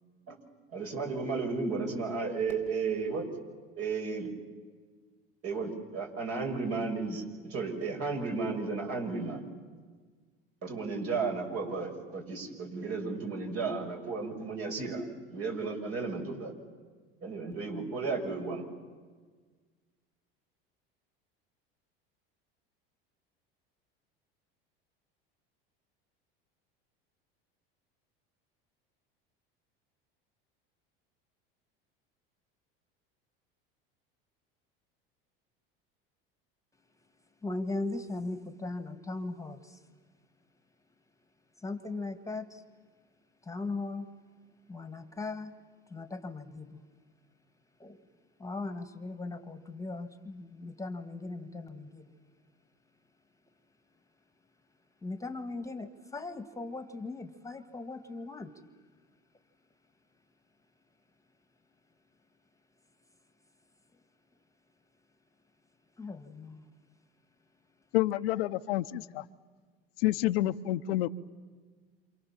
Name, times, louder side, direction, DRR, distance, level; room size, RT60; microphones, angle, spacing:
voice 1, 0.7-3.3 3.8-4.3 5.4-9.4 10.6-16.5 17.2-18.6, right 4 dB, 55° right, 2 dB, 7.3 m, -34 dB
voice 2, 37.4-39.8 41.6-42.6 43.4-44.1 44.7-45.5 45.9-46.8 47.8-48.0 48.4-52.1 55.0-58.6 66.0-66.6, left 3 dB, 10° left, 10 dB, 1.7 m, -38 dB
voice 3, 67.9-69.2 70.0-71.1, left 16 dB, 80° left, 11 dB, 0.9 m, -28 dB
28.0 x 28.0 x 7.4 m, 1.5 s
hypercardioid pair, 90°, 29 cm